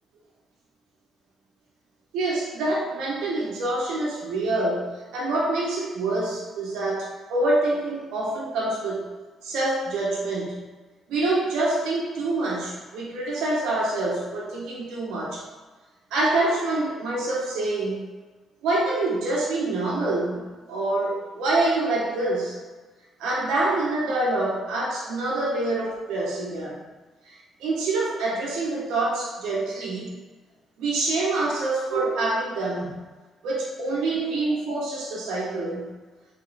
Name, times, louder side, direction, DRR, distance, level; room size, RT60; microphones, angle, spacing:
voice 1, 2.1-9.1 9.4-10.7 11.1-15.4 16.1-18.0 18.6-22.6 23.2-26.9 27.2-30.2 30.8-33.0 33.4-36.0, right 2 dB, 90° right, -4 dB, 1.3 m, -26 dB
3.7 x 3.2 x 4.1 m, 1.3 s
cardioid pair, 90°, 0 cm